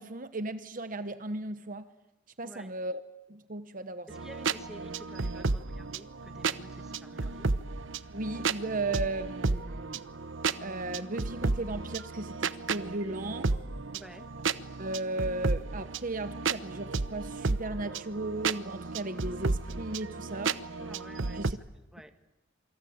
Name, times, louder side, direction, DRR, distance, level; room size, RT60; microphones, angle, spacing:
voice 1, 0.0-1.9 2.4-3.0 3.3-4.1 8.1-10.0 10.6-13.5 14.8-20.6 21.3-21.6, right 2 dB, 40° right, 11 dB, 1.0 m, -36 dB
voice 2, 4.1-7.5 13.9-14.3 20.8-21.6 21.9-22.1, equal, ahead, 7 dB, 1.7 m, -51 dB
sound 1, 4.1-21.5, right 4 dB, 70° right, 0.9 m, -33 dB
27.0 x 25.0 x 8.7 m, 1.0 s
head